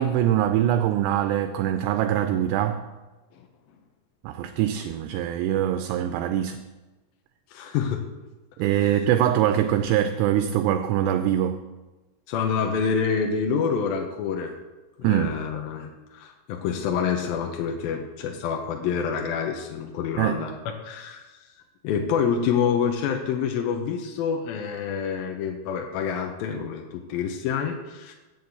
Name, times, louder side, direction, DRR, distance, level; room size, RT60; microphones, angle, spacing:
voice 1, 0.0-2.8 4.2-6.6 8.6-11.6 15.0-15.4 20.2-20.4, right 11 dB, 85° right, 7 dB, 2.7 m, -23 dB
voice 2, 7.5-8.0 12.3-14.5 15.0-20.6 20.8-21.2 21.8-28.1, left 6 dB, 75° left, 2 dB, 2.5 m, -27 dB
7.8 x 7.1 x 7.9 m, 1.1 s
omnidirectional pair, 4.9 m